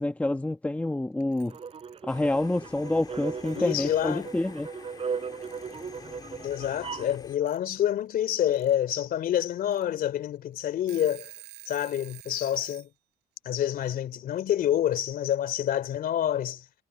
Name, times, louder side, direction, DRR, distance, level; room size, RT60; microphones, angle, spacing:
voice 1, 0.0-1.6 2.0-4.7, left 1 dB, 10° left, 1.3 m, -28 dB
Alarm / Clock, 1.2-2.0 3.1-3.2 3.5-4.3 5.4-6.0 7.5-7.6 8.3-8.7 9.2-9.3 9.7-9.8 10.4-10.5 10.7-12.9, right 19 dB, 90° right, 7.4 m, -49 dB
sound 1, 1.5-7.2, right 6 dB, 35° right, 4.3 m, -37 dB
sound 2, 2.1-7.4, left 4 dB, 25° left, 2.2 m, -47 dB
voice 2, 3.5-4.3 6.4-11.3 11.7-12.9 13.4-16.6, left 11 dB, 60° left, 3.3 m, -27 dB
cardioid pair, 110°, 17 cm